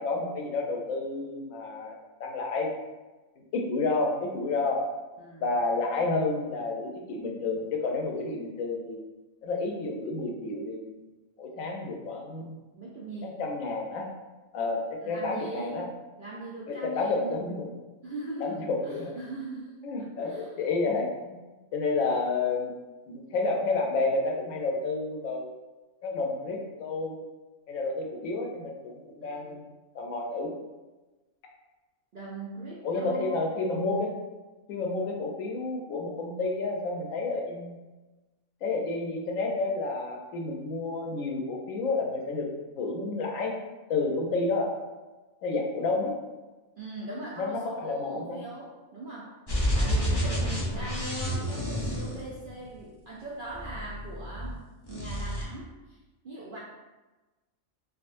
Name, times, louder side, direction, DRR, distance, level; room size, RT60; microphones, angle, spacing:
voice 1, 0.0-2.7 3.4-4.8 5.4-9.0 9.4-11.0 11.4-12.5 13.4-14.1 14.5-15.8 16.7-17.7 18.4-19.1 19.8-21.3 21.7-22.7 23.1-25.5 26.0-27.1 27.7-29.6 29.9-30.5 32.8-34.1 34.7-37.8 38.6-42.5 42.8-43.5 43.9-44.7 45.4-46.1 47.4-48.4, left 3 dB, 75° left, 1 dB, 1.0 m, -30 dB
voice 2, 5.2-5.5 12.7-13.5 15.0-15.9 16.2-17.4 18.0-20.5 29.2-29.5 32.1-33.4 33.9-34.0 46.8-49.4 49.7-54.6 54.9-56.0 56.2-56.6, right 2 dB, 75° right, -5 dB, 0.4 m, -40 dB
sound 1, 49.5-52.8 53.5-54.6 54.8-55.4, equal, 30° left, 0.5 m, -29 dB
3.6 x 2.2 x 2.5 m, 1.1 s
omnidirectional pair, 1.4 m